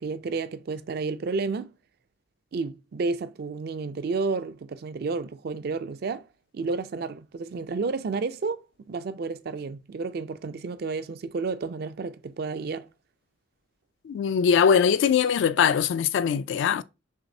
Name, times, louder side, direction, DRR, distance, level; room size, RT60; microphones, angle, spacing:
voice 1, 0.0-1.7 2.5-6.3 6.5-8.6 8.9-12.9, right 4 dB, 55° right, 0.4 m, -31 dB
voice 2, 14.1-16.8, left 7 dB, 80° left, 0.3 m, -21 dB
6.0 x 2.5 x 2.7 m
head